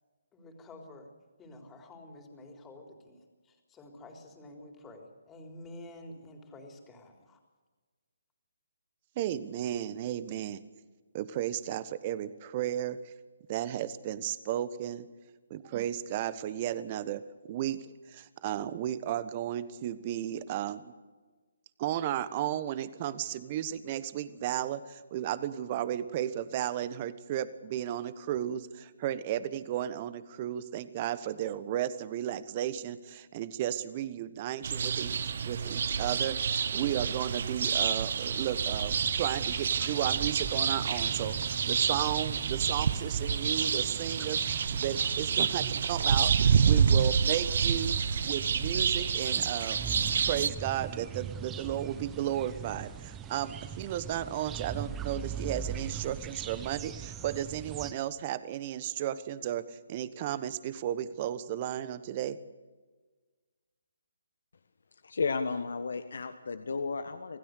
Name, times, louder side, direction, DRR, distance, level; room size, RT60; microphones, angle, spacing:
voice 1, 0.3-1.1 1.4-7.4, left 1 dB, 15° left, 2 dB, 3.8 m, -49 dB
voice 2, 9.2-10.6 11.1-13.1 13.5-15.1 15.5-20.9 21.8-48.0 48.2-49.8 50.3-62.4, right 11 dB, 30° right, 15 dB, 1.3 m, -34 dB
sound 1, 34.6-50.5, right 6 dB, 55° right, 0.9 m, -28 dB
sound 2, 38.9-57.9, right 7 dB, 15° right, 1.2 m, -42 dB
voice 3, 65.0-67.4, left 4 dB, 65° left, 9 dB, 1.4 m, -33 dB
27.0 x 16.5 x 6.7 m, 1.3 s
figure-of-eight pair, 145°, 0 cm